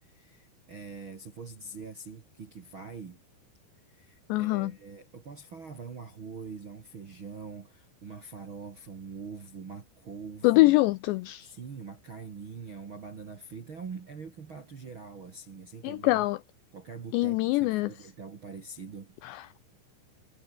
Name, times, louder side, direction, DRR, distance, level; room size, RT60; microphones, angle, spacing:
voice 1, 0.0-3.2 3.9-10.7 11.4-16.2 16.7-19.1, right 5 dB, 50° right, 1.5 m, -44 dB
voice 2, 4.3-4.7 10.4-11.5 15.8-16.4 17.1-17.9 19.2-19.6, left 20 dB, 90° left, 2.5 m, -24 dB
omnidirectional pair, 5.8 m